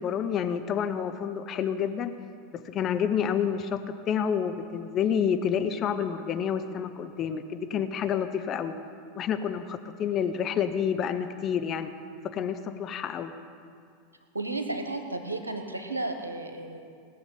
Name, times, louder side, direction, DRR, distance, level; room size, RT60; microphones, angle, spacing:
voice 1, 0.0-2.1 2.5-8.7 9.2-11.9 12.3-13.3, left 8 dB, 35° left, 8 dB, 0.8 m, -29 dB
voice 2, 14.3-16.8, right 2 dB, 85° right, 5 dB, 1.5 m, -33 dB
18.5 x 7.1 x 8.7 m, 2.2 s
figure-of-eight pair, 85°, 0 cm